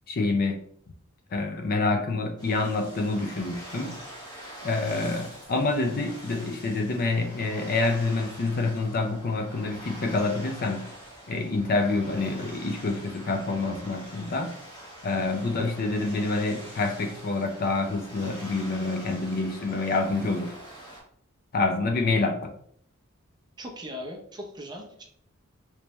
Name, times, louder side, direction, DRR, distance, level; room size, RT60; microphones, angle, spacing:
voice 1, 0.1-0.6 1.3-4.0 4.6-10.9 11.3-14.6 15.0-20.6 21.5-22.5, left 3 dB, 45° left, 4 dB, 0.5 m, -27 dB
sound 1, 2.4-21.0, right 1 dB, 20° left, 1.4 m, -45 dB
voice 2, 23.6-25.0, equal, 20° right, 1 dB, 0.6 m, -39 dB
3.3 x 3.1 x 3.0 m, 0.65 s
head